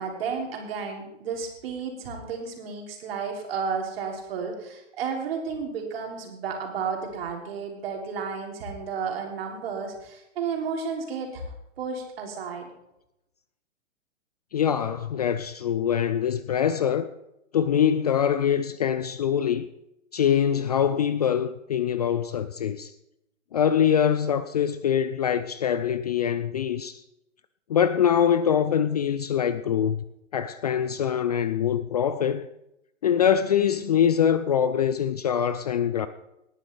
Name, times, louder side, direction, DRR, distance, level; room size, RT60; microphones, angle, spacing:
voice 1, 0.0-12.7, right 5 dB, 50° right, 3.3 m, -32 dB
voice 2, 14.5-17.1 17.5-19.7 20.1-22.9 23.5-27.0 27.7-30.0 30.3-32.5 33.0-36.1, left 8 dB, 35° left, 0.4 m, -24 dB
19.0 x 9.8 x 3.4 m
figure-of-eight pair, 120°, 38 cm